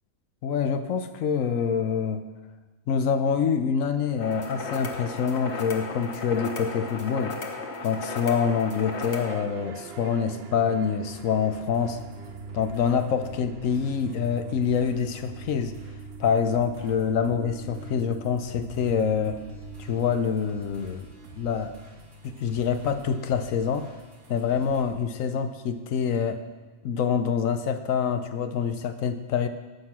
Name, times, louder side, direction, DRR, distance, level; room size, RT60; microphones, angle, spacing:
voice 1, 0.4-2.3 2.9-7.4 7.8-12.0 12.5-15.8 16.2-19.4 19.8-21.1 21.4-21.7 22.2-23.9 24.3-26.4 26.8-29.5, left 6 dB, 70° left, 9 dB, 1.1 m, -26 dB
sound 1, 4.2-9.4, left 3 dB, 50° left, 1.4 m, -35 dB
sound 2, 9.0-27.3, right 4 dB, 55° right, 0.9 m, -44 dB
sound 3, 11.7-24.8, right 2 dB, 80° right, 2.5 m, -51 dB
12.0 x 8.0 x 5.9 m, 1.2 s
omnidirectional pair, 1.5 m